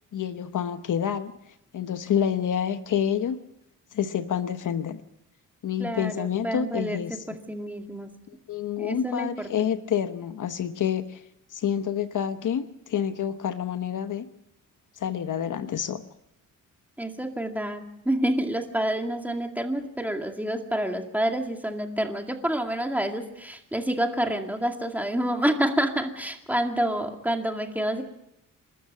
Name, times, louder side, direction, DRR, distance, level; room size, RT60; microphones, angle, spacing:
voice 1, 0.1-1.3 1.7-3.4 3.9-5.0 5.6-7.2 8.3-11.2 11.5-14.3 15.0-16.0, left 9 dB, 65° left, 10 dB, 1.1 m, -28 dB
voice 2, 5.8-8.1 8.8-9.7 17.0-28.0, right 1 dB, 5° right, 4 dB, 2.2 m, -28 dB
28.5 x 13.0 x 7.4 m, 0.82 s
cardioid pair, 120°, 33 cm